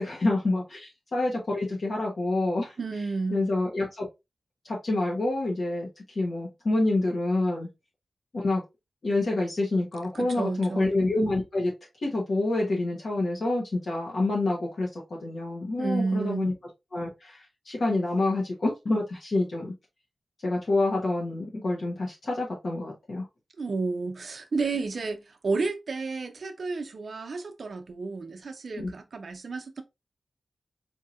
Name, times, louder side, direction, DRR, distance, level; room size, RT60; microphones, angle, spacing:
voice 1, 0.0-2.7 3.3-4.1 4.6-7.7 8.3-8.6 9.0-11.7 12.0-16.5 16.9-19.7 20.4-23.2 28.8-28.9, left 2 dB, 60° left, 1.1 m, -27 dB
voice 2, 2.8-3.5 10.1-10.9 15.8-16.5 23.6-29.8, right 3 dB, 65° right, 0.6 m, -31 dB
4.5 x 2.7 x 2.5 m
wide cardioid pair, 100°, 0 cm